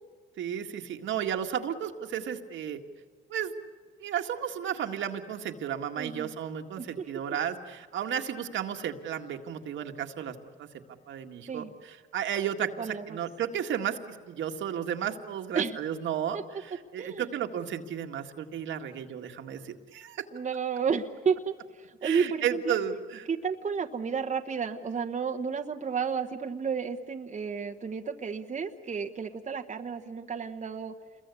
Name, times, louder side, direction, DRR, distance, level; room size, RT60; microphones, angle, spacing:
voice 1, 0.4-2.8 3.3-3.5 4.0-10.7 11.1-20.2 22.0-23.3, right 9 dB, 75° right, 4 dB, 1.8 m, -33 dB
voice 2, 5.9-6.3 6.8-7.1 11.5-11.7 12.8-13.2 15.5-15.8 16.3-16.4 16.7-17.3 20.3-22.8 23.3-30.9, right 6 dB, 35° right, 5 dB, 1.2 m, -32 dB
27.5 x 22.0 x 8.4 m, 1.5 s
cardioid pair, 90°, 20 cm